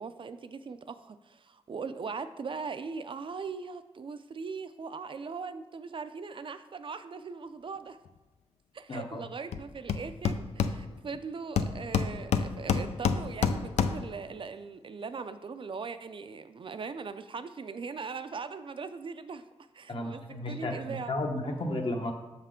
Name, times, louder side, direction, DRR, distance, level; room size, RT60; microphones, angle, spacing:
voice 1, 0.0-8.0 8.7-19.4 19.7-20.2 20.5-21.2, right 5 dB, 50° right, 11 dB, 0.4 m, -40 dB
voice 2, 8.9-9.2 19.9-22.1, left 1 dB, 50° left, 3 dB, 1.1 m, -33 dB
Hammer, 9.5-9.6 9.9-11.2 11.6-14.2, left 6 dB, 85° left, 0.4 m, -28 dB
6.4 x 5.6 x 3.7 m, 1.1 s
cardioid pair, 75°, 11 cm